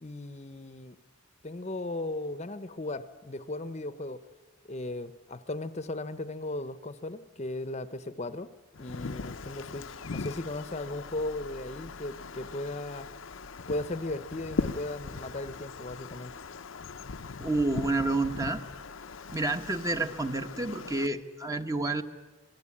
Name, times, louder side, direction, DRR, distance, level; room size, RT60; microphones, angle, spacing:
voice 1, 0.0-1.0 1.4-4.2 4.6-8.5 8.8-13.1 13.7-16.3, left 2 dB, 35° left, 13 dB, 0.8 m, -36 dB
Wind, 8.7-21.1, left 4 dB, 80° left, 0.8 m, -40 dB
voice 2, 17.4-18.6 19.3-22.0, right 2 dB, 15° right, 7 dB, 1.1 m, -29 dB
26.5 x 21.0 x 8.6 m, 1.2 s
head